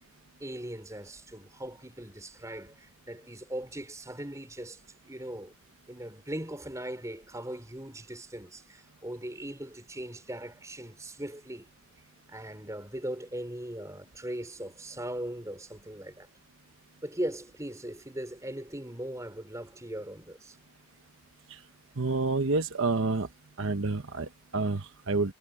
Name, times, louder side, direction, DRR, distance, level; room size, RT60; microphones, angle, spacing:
voice 1, 0.4-5.5 5.9-11.7 12.3-16.3 17.0-20.6, right 1 dB, 15° right, 4.5 m, -39 dB
voice 2, 22.0-23.3 23.6-25.3, right 3 dB, 70° right, 1.0 m, -29 dB
head